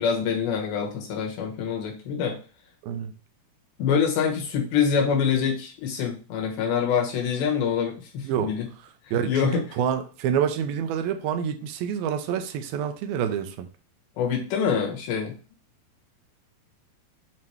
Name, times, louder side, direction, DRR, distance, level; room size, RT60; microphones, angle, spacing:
voice 1, 0.0-2.4 3.8-8.7 9.3-9.6 14.2-15.3, left 7 dB, 80° left, 3.2 m, -25 dB
voice 2, 9.1-13.7, right 8 dB, 80° right, 2.4 m, -27 dB
7.5 x 2.9 x 4.6 m
omnidirectional pair, 4.3 m